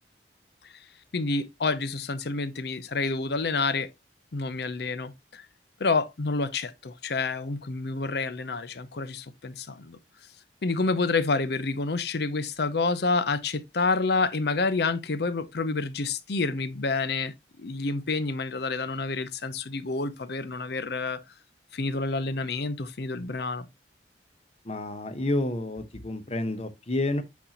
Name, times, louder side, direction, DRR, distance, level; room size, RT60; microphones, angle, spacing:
voice 1, 1.1-3.9 4.3-5.5 5.8-10.0 10.6-21.2 21.7-23.7, left 3 dB, 65° left, 0.7 m, -28 dB
voice 2, 24.6-27.2, left 2 dB, 35° left, 0.9 m, -29 dB
8.3 x 4.3 x 2.9 m
head